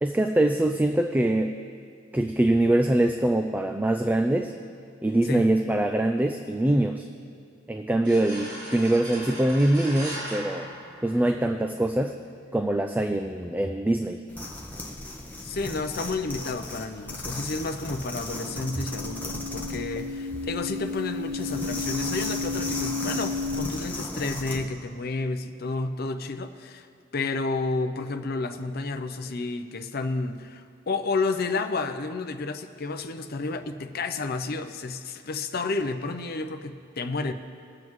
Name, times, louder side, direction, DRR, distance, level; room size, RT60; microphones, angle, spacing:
voice 1, 0.0-1.5 2.1-4.5 5.0-7.1 7.7-10.7 11.0-12.2 12.5-14.2, right 1 dB, 10° right, 5 dB, 0.3 m, -23 dB
sound 1, 8.0-11.6, right 1 dB, 65° right, 2.9 m, -38 dB
sound 2, 14.3-24.7, left 2 dB, 10° left, 1.0 m, -36 dB
voice 2, 15.4-26.9 27.1-37.3, left 3 dB, 50° left, 7 dB, 0.6 m, -31 dB
sound 3, 17.9-23.7, left 3 dB, 85° right, 1.4 m, -33 dB
21.5 x 7.6 x 3.1 m, 2.3 s
head